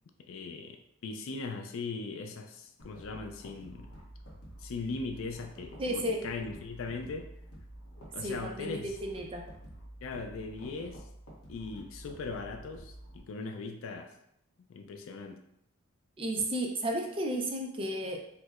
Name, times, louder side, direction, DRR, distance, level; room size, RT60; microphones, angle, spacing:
voice 1, 0.3-3.9 4.6-7.3 8.1-8.9 10.0-11.0 11.5-14.1 14.7-15.4, left 4 dB, 65° left, 5 dB, 0.4 m, -39 dB
sound 1, 2.8-13.2, right 1 dB, 85° left, 1.0 m, -49 dB
voice 2, 5.8-6.2 8.2-9.4 16.2-18.2, right 1 dB, 25° right, 1 dB, 0.4 m, -33 dB
4.3 x 2.0 x 2.4 m, 0.75 s
head